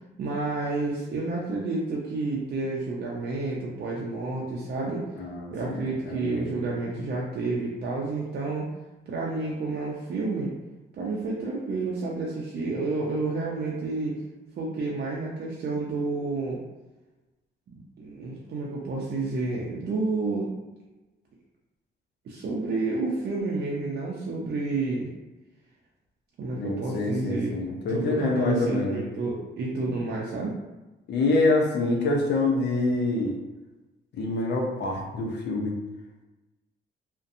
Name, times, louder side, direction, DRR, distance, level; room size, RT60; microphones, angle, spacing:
voice 1, 0.2-5.1 5.5-8.7 9.1-10.5 11.0-14.2 14.6-16.6 18.0-20.5 22.3-25.1 26.4-27.6 27.9-30.6, right 3 dB, 55° right, -4 dB, 0.5 m, -30 dB
voice 2, 5.2-6.5 26.6-29.0 31.1-33.4 34.1-35.7, left 2 dB, 60° left, 0 dB, 0.6 m, -26 dB
2.6 x 2.2 x 2.5 m, 1.1 s
cardioid pair, 90°, 20 cm